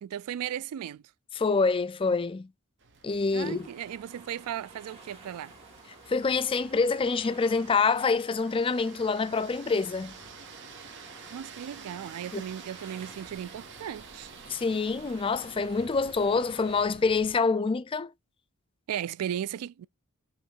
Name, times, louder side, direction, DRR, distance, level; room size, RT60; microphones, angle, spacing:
voice 1, 0.0-1.0 3.3-5.5 11.3-14.3 18.9-19.9, right 10 dB, 85° right, 0.3 m, -36 dB
voice 2, 1.4-2.5 3.0-3.7 6.1-10.1 12.3-12.4 14.5-18.1, left 4 dB, 25° left, 0.3 m, -26 dB
sound 1, 2.8-17.4, right 5 dB, 55° right, 1.1 m, -50 dB
sound 2, 3.4-16.9, right 2 dB, 30° right, 2.4 m, -52 dB
5.6 x 3.1 x 5.4 m
head